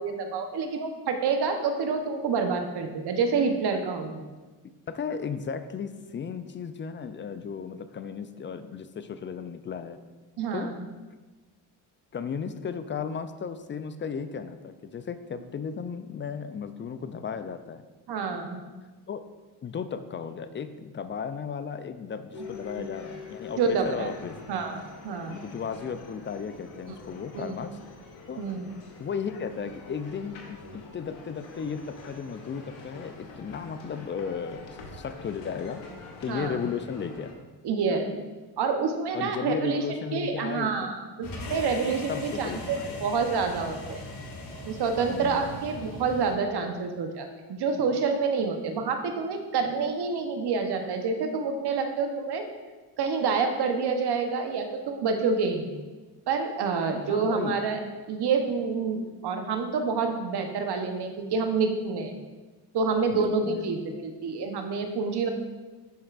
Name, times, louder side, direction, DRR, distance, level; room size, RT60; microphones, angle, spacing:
voice 1, 0.0-4.3 10.4-10.8 18.1-18.6 23.6-24.1 24.5-25.4 27.3-27.5 28.4-28.7 36.3-36.6 37.6-38.1 38.6-39.8 40.1-44.0 44.6-52.5 53.0-55.7 56.3-57.8 58.1-62.1 62.7-65.3, right 5 dB, 60° right, 5 dB, 1.0 m, -28 dB
voice 2, 4.9-10.0 10.5-10.7 11.1-11.2 12.1-17.8 19.1-19.2 19.6-24.4 25.3-27.8 28.3-28.4 29.0-35.8 36.2-37.3 39.1-40.9 42.1-43.1 45.1-45.5 57.1-57.7 63.1-64.0, left 6 dB, 30° left, 11 dB, 0.4 m, -35 dB
sound 1, 22.3-37.3, left 4 dB, 90° left, 1.1 m, -45 dB
sound 2, 41.2-46.3, left 1 dB, 50° left, 1.6 m, -39 dB
11.5 x 4.3 x 2.5 m, 1.3 s
supercardioid pair, 70°, 45 cm